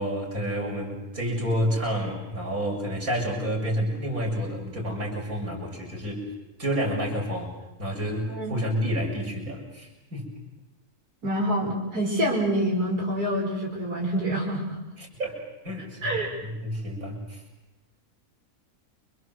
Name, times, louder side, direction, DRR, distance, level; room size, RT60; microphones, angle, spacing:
voice 1, 0.0-6.2 6.6-7.5 7.8-10.3 15.0-15.4 15.6-17.4, equal, 65° right, -1 dB, 7.0 m, -29 dB
voice 2, 11.2-14.8 16.0-16.3, right 1 dB, 90° right, -4 dB, 5.8 m, -26 dB
28.5 x 26.0 x 7.9 m, 0.97 s
omnidirectional pair, 1.6 m